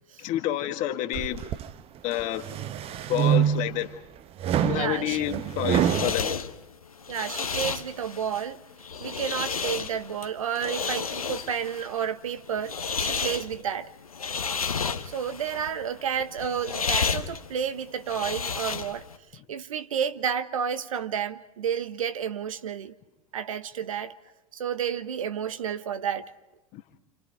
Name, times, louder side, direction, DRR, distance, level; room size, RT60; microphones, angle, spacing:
voice 1, 0.2-1.4 2.0-2.5 3.1-4.0 4.6-6.4 26.7-26.8, left 13 dB, 45° left, 1.8 m, -29 dB
sound 1, 1.1-1.7 2.2-3.8 4.4-6.1, right 10 dB, 35° right, 0.9 m, -26 dB
voice 2, 4.7-5.3 7.1-8.6 9.0-13.9 15.0-19.0 19.5-22.9 23.3-24.1 24.5-26.3, right 8 dB, 70° right, 1.1 m, -31 dB
sound 2, 5.3-19.2, left 6 dB, 80° left, 1.2 m, -32 dB
30.0 x 28.0 x 4.7 m
figure-of-eight pair, 85°, 18 cm